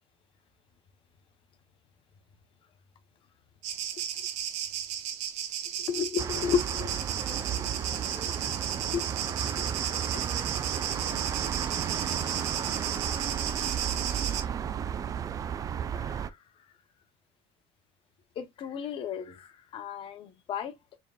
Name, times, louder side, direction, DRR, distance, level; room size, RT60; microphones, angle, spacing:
sound 1, 3.6-14.4, right 10 dB, 70° right, 0.9 m, -34 dB
voice 1, 5.8-7.0 8.9-9.0 12.4-12.5 15.9-16.3 18.4-20.7, left 7 dB, 45° left, 0.8 m, -33 dB
sound 2, 6.2-16.3, right 8 dB, 30° right, 0.3 m, -33 dB
voice 2, 7.1-13.1, equal, 10° right, 2.2 m, -53 dB
4.4 x 3.6 x 2.2 m
cardioid pair, 125°, 12 cm